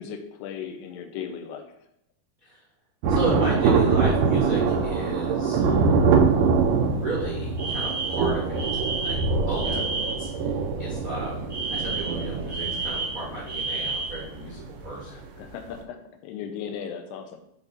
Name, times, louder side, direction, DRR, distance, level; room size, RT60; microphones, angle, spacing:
voice 1, 0.0-1.7 9.6-9.9 15.1-16.0 16.2-17.4, left 7 dB, 85° left, 6 dB, 2.8 m, -37 dB
Thunder, 3.0-15.0 15.3-15.4, right 5 dB, 85° right, 1.8 m, -24 dB
voice 2, 3.1-6.0 6.9-9.2 9.5-9.7 10.2-15.2, right 2 dB, 70° right, -7 dB, 0.8 m, -33 dB
Alarm, 7.6-10.3 11.5-14.2, right 4 dB, 55° right, 0.4 m, -31 dB
8.2 x 3.0 x 5.1 m, 0.77 s
omnidirectional pair, 4.7 m